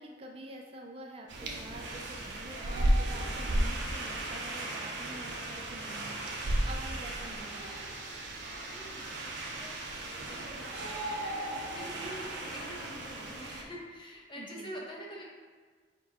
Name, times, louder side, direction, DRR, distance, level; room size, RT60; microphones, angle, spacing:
voice 1, 0.0-7.7 14.4-14.7, right 1 dB, 35° right, 2 dB, 0.4 m, -47 dB
sound 1, 1.3-13.6, right 1 dB, 90° right, 0.6 m, -34 dB
voice 2, 8.7-9.1 9.4-11.3 11.6-15.2, equal, 30° left, -2 dB, 0.8 m, -46 dB
4.3 x 4.1 x 2.8 m, 1.5 s
head